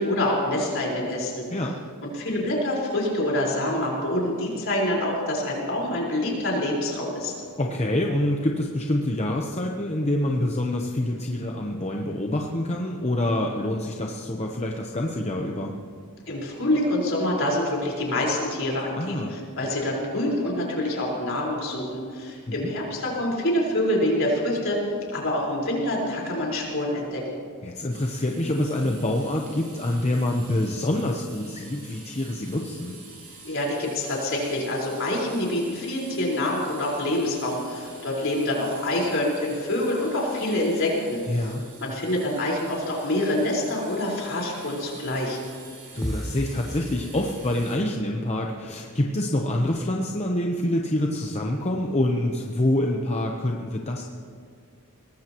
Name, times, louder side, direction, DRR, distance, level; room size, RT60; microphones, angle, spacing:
voice 1, 0.0-1.4 2.0-7.3 16.3-24.8 25.1-27.4 33.4-41.5 41.8-45.4, left 1 dB, 60° left, -3 dB, 4.6 m, -26 dB
voice 2, 7.6-15.7 19.0-19.4 22.5-22.7 27.6-33.0 41.3-41.6 45.9-54.0, left 1 dB, 30° left, 1 dB, 0.9 m, -26 dB
sound 1, 27.9-47.8, right 3 dB, 40° right, 3.8 m, -47 dB
sound 2, 46.0-47.8, equal, ahead, 0.5 m, -34 dB
23.0 x 19.0 x 3.0 m, 2.2 s
head